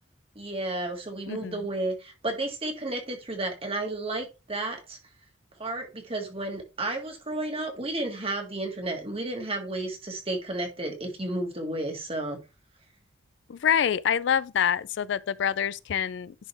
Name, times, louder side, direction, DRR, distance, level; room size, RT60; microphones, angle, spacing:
voice 1, 0.4-5.0 5.6-12.4, right 2 dB, 30° right, 1.9 m, -32 dB
voice 2, 1.3-1.6 13.5-16.3, left 8 dB, 65° left, 0.4 m, -26 dB
10.5 x 4.2 x 3.4 m
head